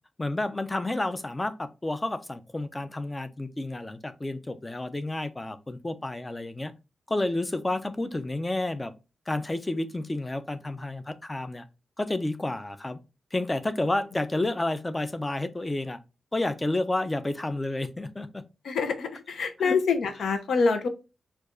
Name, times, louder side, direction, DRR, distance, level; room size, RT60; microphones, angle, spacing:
voice 1, 0.2-6.7 7.1-8.9 9.3-11.6 12.0-13.0 13.3-16.0 16.3-18.4 19.6-19.7, left 2 dB, 15° left, 0.4 m, -30 dB
voice 2, 18.6-20.9, left 5 dB, 85° left, 0.6 m, -26 dB
4.5 x 2.3 x 2.4 m
wide cardioid pair, 130°, 0 cm